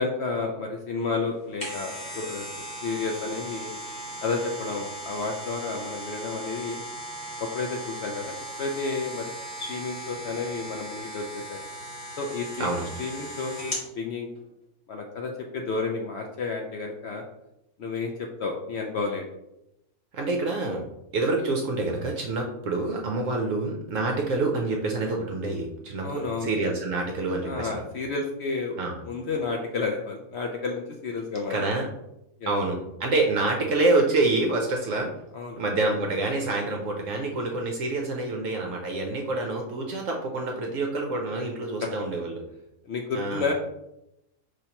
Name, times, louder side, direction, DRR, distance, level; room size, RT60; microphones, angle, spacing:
voice 1, 0.0-3.7 4.2-6.8 7.4-9.3 9.6-11.6 12.2-12.7 13.0-14.3 14.9-17.2 17.8-19.3 26.0-26.5 27.4-28.8 29.0-31.7 32.4-32.5 35.3-35.6 41.8-41.9 42.8-43.5, left 4 dB, 70° left, 2 dB, 0.6 m, -31 dB
sound 1, 1.3-13.9 14.3-14.4, right 1 dB, 35° left, 1.8 m, -38 dB
voice 2, 20.1-20.8 21.1-27.8 28.8-29.0 31.5-31.9 32.5-35.1 35.6-42.4 43.1-43.5, right 2 dB, 65° right, 1 dB, 0.9 m, -27 dB
5.4 x 3.1 x 2.9 m, 0.87 s
omnidirectional pair, 1.6 m